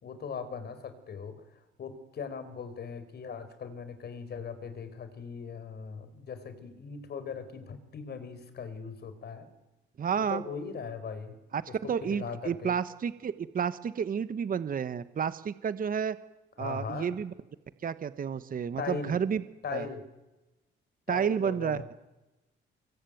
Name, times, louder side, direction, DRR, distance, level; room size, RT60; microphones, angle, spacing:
voice 1, 0.0-9.5 10.2-11.4 11.7-12.8 16.6-17.2 18.8-19.2 19.6-20.0 21.1-21.9, left 6 dB, 55° left, 11 dB, 4.4 m, -39 dB
voice 2, 10.0-10.4 11.5-16.2 16.6-17.3 17.8-19.4 19.7-19.9 21.1-21.8, right 7 dB, 45° right, 13 dB, 1.1 m, -31 dB
25.0 x 22.0 x 9.3 m, 1.0 s
cardioid pair, 90°, 20 cm